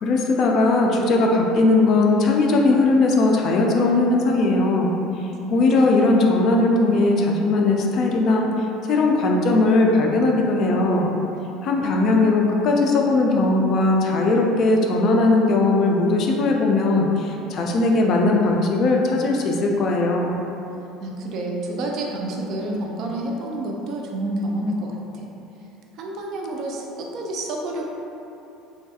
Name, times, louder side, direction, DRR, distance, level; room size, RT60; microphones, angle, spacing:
voice 1, 0.0-4.9 5.5-8.5 8.9-11.1 11.6-20.3, left 2 dB, 45° left, 0 dB, 0.3 m, -19 dB
voice 2, 5.4-6.1 21.0-25.3 26.0-27.8, right 1 dB, 50° right, -1 dB, 0.4 m, -29 dB
3.1 x 2.2 x 2.7 m, 2.9 s
cardioid pair, 140°, 0 cm